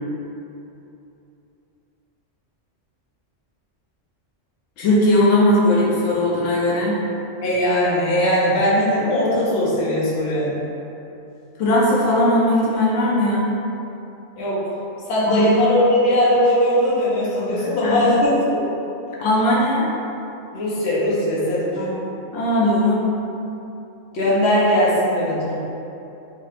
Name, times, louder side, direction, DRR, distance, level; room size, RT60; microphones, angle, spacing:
voice 1, 4.8-7.0 11.6-13.5 15.2-15.5 17.5-18.0 19.2-19.9 21.7-22.0 22.3-23.0, left 1 dB, 90° left, -5 dB, 1.0 m, -19 dB
voice 2, 7.4-10.6 14.4-14.7 15.1-18.7 20.5-21.8 24.1-25.6, left 1 dB, 60° left, -8 dB, 1.1 m, -19 dB
3.3 x 2.8 x 3.2 m, 2.9 s
omnidirectional pair, 1.3 m